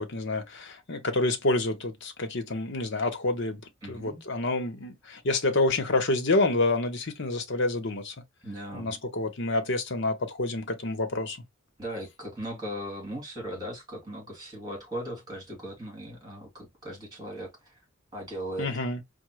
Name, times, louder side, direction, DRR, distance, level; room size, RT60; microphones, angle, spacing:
voice 1, 0.0-3.6 3.9-8.1 8.7-11.4 18.6-19.0, left 2 dB, 65° left, 1.0 m, -28 dB
voice 2, 3.8-4.2 8.4-8.9 11.8-17.8 18.1-18.7, right 1 dB, 20° right, 2.6 m, -38 dB
4.8 x 2.2 x 3.1 m
head